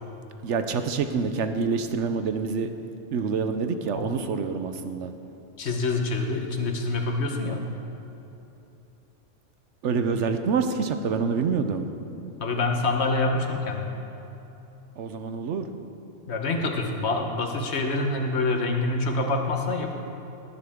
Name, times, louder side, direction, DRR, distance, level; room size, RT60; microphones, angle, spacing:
voice 1, 0.4-2.7 3.1-5.1 9.8-11.9 15.0-15.7, right 5 dB, 75° right, 8 dB, 1.0 m, -26 dB
voice 2, 5.6-7.6 12.4-13.9 16.3-19.9, left 2 dB, 65° left, 3 dB, 1.4 m, -26 dB
18.5 x 9.9 x 3.6 m, 3.0 s
omnidirectional pair, 1.3 m